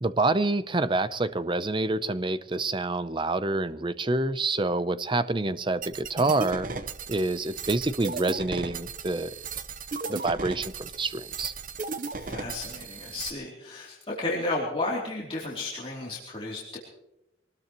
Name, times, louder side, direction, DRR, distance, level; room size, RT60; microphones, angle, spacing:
voice 1, 0.0-6.7 7.1-9.3 10.1-11.5, right 2 dB, 25° right, 13 dB, 0.7 m, -27 dB
sound 1, 5.8-13.3, right 4 dB, 45° right, 1.0 m, -36 dB
voice 2, 12.1-16.8, left 2 dB, 30° left, -4 dB, 3.0 m, -33 dB
24.5 x 19.5 x 3.0 m, 0.88 s
head